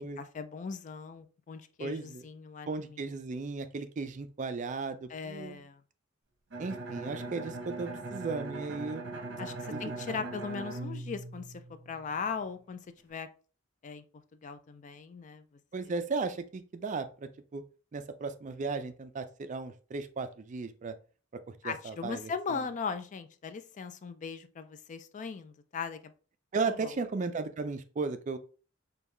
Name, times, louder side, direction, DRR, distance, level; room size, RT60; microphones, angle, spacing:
voice 1, 0.2-3.0 5.1-5.8 9.4-13.3 13.8-14.0 14.4-15.4 21.6-26.1 26.7-26.9, left 5 dB, 40° left, 11 dB, 0.3 m, -39 dB
voice 2, 1.8-2.3 2.7-5.6 6.6-9.2 9.7-9.8 10.1-10.3 15.7-17.6 17.9-20.9 21.6-22.6 26.5-28.4, right 4 dB, 40° right, 10 dB, 0.4 m, -36 dB
Bowed string instrument, 6.5-12.2, right 2 dB, 60° right, 0.9 m, -40 dB
5.3 x 2.3 x 3.2 m, 0.37 s
head